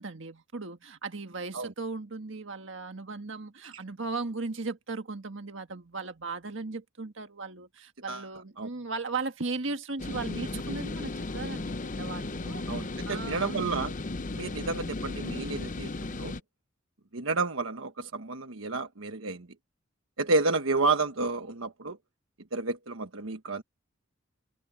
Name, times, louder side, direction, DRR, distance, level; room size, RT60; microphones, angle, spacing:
voice 1, 0.0-13.7, right 3 dB, 65° right, 1.7 m, -37 dB
sound 1, 10.0-16.4, left 2 dB, 40° left, 0.7 m, -35 dB
voice 2, 12.7-13.9 14.3-16.3 17.1-19.5 20.2-22.0 22.5-23.6, right 3 dB, 85° right, 1.2 m, -30 dB
head